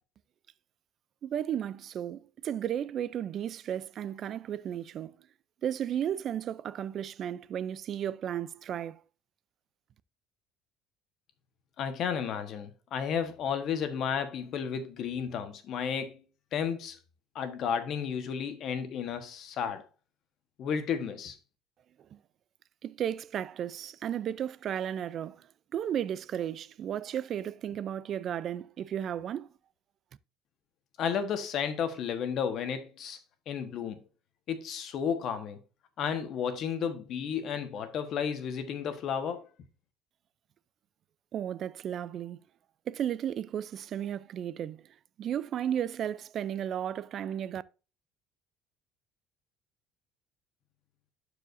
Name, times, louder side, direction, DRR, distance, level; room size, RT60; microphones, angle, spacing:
voice 1, 1.2-5.1 5.6-9.0 22.1-22.2 22.8-25.5 25.7-29.5 41.3-42.4 42.9-44.9 45.2-47.6, right 10 dB, 45° right, 0.4 m, -34 dB
voice 2, 11.8-16.2 16.5-17.0 17.3-19.8 20.6-21.4 31.0-33.2 33.5-34.0 34.5-35.6 36.0-39.5, left 7 dB, 50° left, 1.2 m, -32 dB
11.5 x 5.0 x 2.6 m
cardioid pair, 125°, 0 cm